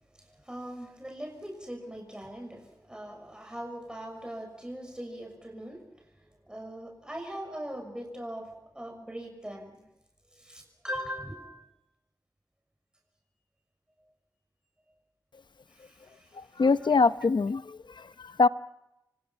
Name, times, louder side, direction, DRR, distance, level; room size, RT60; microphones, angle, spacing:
voice 1, 0.1-9.9 10.3-11.7 14.0-14.1 15.7-16.6, equal, 10° right, 2 dB, 6.3 m, -41 dB
voice 2, 16.3-18.5, left 4 dB, 80° left, 13 dB, 0.8 m, -24 dB
29.0 x 25.0 x 5.7 m, 0.88 s
wide cardioid pair, 75°, 8 cm